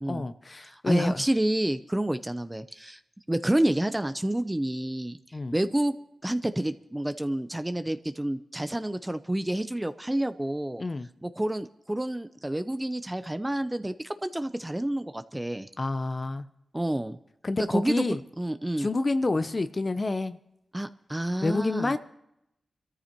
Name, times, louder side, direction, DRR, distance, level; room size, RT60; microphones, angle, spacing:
voice 1, 0.1-1.2 5.3-5.5 10.8-11.1 15.8-16.5 17.4-18.2 18.8-20.4 21.4-22.0, left 3 dB, 40° left, 11 dB, 0.6 m, -28 dB
voice 2, 0.7-3.0 3.3-5.2 5.5-5.9 6.2-10.8 11.2-13.9 14.2-15.7 16.7-17.2 17.7-18.0 18.4-18.9 20.7-21.9, right 1 dB, 15° right, 11 dB, 0.6 m, -29 dB
26.0 x 13.5 x 3.0 m, 0.81 s
cardioid pair, 50°, 0 cm